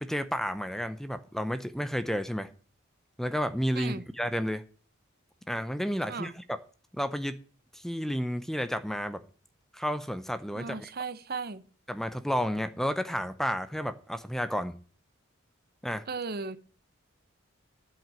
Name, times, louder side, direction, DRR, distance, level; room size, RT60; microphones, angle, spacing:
voice 1, 0.0-2.5 3.2-4.6 5.5-6.4 6.9-7.4 7.7-9.2 9.7-10.9 11.9-14.7 15.8-16.0, equal, ahead, 11 dB, 0.6 m, -31 dB
voice 2, 10.6-11.6 16.1-16.6, right 4 dB, 50° right, 14 dB, 0.9 m, -36 dB
9.0 x 7.8 x 8.9 m, 0.41 s
head